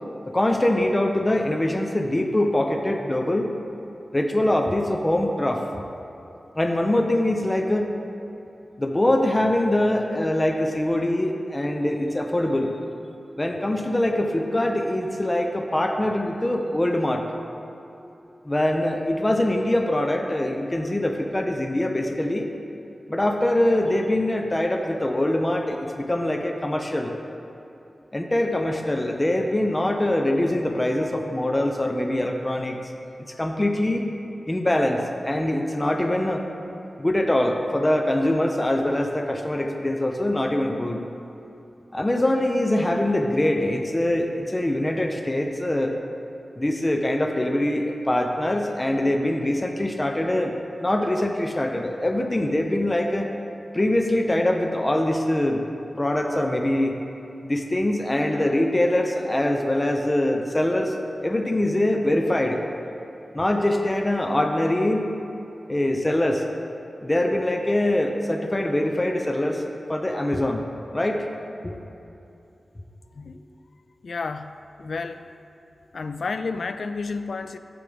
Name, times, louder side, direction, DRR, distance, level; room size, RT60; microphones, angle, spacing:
voice 1, 0.3-3.5 4.1-5.7 6.6-7.9 8.8-12.7 13.4-17.3 18.5-22.5 23.1-27.1 28.1-32.8 33.4-34.1 34.5-36.4 37.0-41.0 41.9-45.9 46.6-50.5 50.8-53.3 53.7-55.6 56.0-57.0 57.4-61.0 61.2-62.6 63.3-65.1 65.7-66.4 67.0-69.6 69.9-70.7 70.9-71.3 71.6-71.8, left 1 dB, 20° left, 3 dB, 0.6 m, -23 dB
voice 2, 74.0-74.5 74.8-75.3 75.9-77.6, left 4 dB, 70° left, 10 dB, 0.3 m, -31 dB
14.5 x 5.0 x 3.4 m, 2.7 s
wide cardioid pair, 70°, 0 cm